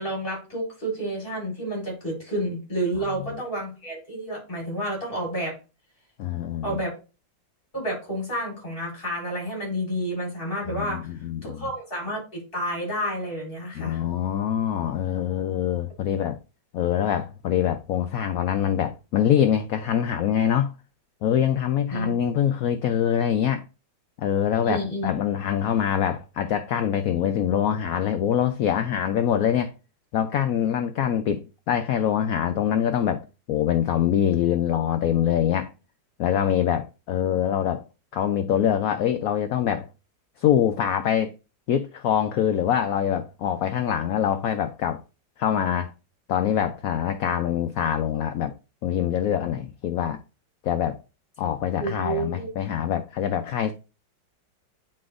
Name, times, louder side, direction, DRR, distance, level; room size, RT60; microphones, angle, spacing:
voice 1, 0.0-5.6 6.6-7.0 7.7-11.1 11.4-14.0 21.9-22.1 24.6-25.1 51.8-52.5, right 1 dB, 25° left, 4.3 m, -30 dB
voice 2, 6.2-6.8 10.7-11.6 13.7-16.4 16.7-20.7 21.2-23.6 24.2-29.7 30.1-35.7 36.2-37.8 38.1-39.9 40.4-41.3 41.7-45.0 45.4-45.9 46.3-48.5 48.8-50.2 50.6-51.0 51.4-53.7, left 9 dB, 75° left, 0.8 m, -24 dB
9.6 x 4.3 x 2.5 m
omnidirectional pair, 2.0 m